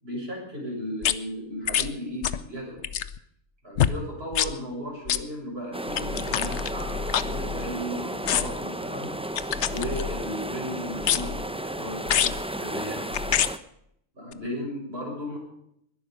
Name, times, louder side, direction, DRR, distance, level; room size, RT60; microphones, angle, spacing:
voice 1, 0.0-2.8 3.6-9.1 9.7-13.0 14.1-15.4, equal, 45° right, -2 dB, 7.1 m, -35 dB
sound 1, 1.0-1.1 1.7-1.9 2.2-2.5 2.8-3.2 3.8-4.0 4.3-4.5 5.1-5.2 5.9-7.8 8.2-8.6 9.4-10.3 11.0-11.5 12.1-12.4 13.1-13.5 14.3-14.4, left 9 dB, 60° left, 1.0 m, -26 dB
sound 2, 5.7-13.6, right 1 dB, 10° right, 0.3 m, -33 dB
21.0 x 11.5 x 5.2 m, 0.74 s
omnidirectional pair, 1.4 m